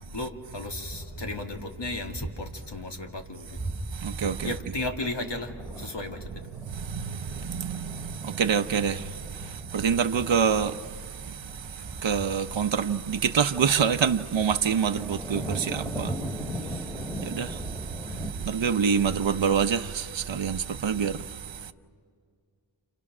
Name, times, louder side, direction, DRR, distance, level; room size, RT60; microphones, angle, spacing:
voice 1, 0.1-3.4 4.4-5.5 5.8-6.2, left 2 dB, 55° left, 2.4 m, -34 dB
sound 1, 0.6-2.7 3.0-3.2 3.5-18.3, right 1 dB, 5° left, 3.0 m, -39 dB
voice 2, 3.9-4.5 6.5-21.7, right 7 dB, 65° right, 0.9 m, -27 dB
30.0 x 28.0 x 6.2 m
wide cardioid pair, 75°, 49 cm